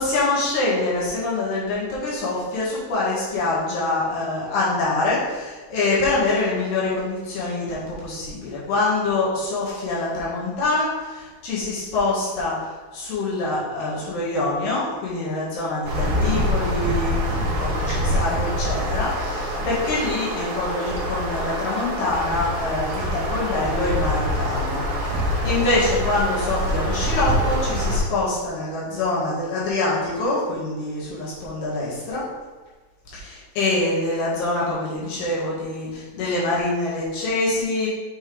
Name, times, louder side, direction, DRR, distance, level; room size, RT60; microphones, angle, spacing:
voice 1, 0.0-32.2 33.1-37.9, left 2 dB, 65° left, -8 dB, 3.8 m, -25 dB
sound 1, 15.8-28.0, equal, 75° right, 1.3 m, -25 dB
7.7 x 5.9 x 3.5 m, 1.3 s
omnidirectional pair, 5.3 m